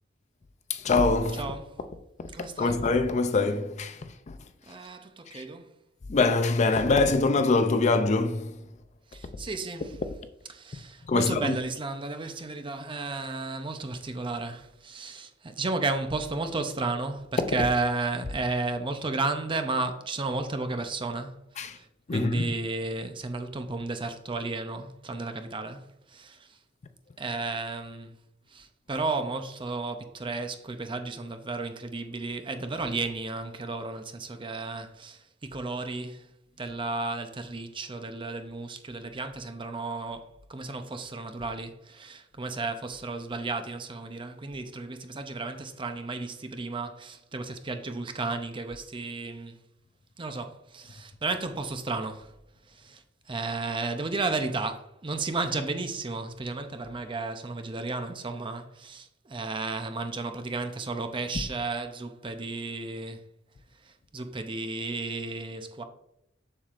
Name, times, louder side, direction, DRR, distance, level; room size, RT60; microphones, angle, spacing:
voice 1, 0.7-1.5 2.2-4.5 5.3-5.4 6.1-8.7 11.0-11.6 21.6-21.8 22.1-22.5, left 3 dB, 35° left, 0.4 m, -25 dB
voice 2, 1.4-1.7 2.3-2.8 4.7-5.7 9.1-9.9 10.5-26.6 27.2-28.2 28.5-36.3 36.6-49.6 50.2-52.3 52.7-63.3 63.8-65.8, right 3 dB, 25° right, 0.6 m, -33 dB
7.2 x 6.5 x 2.5 m
head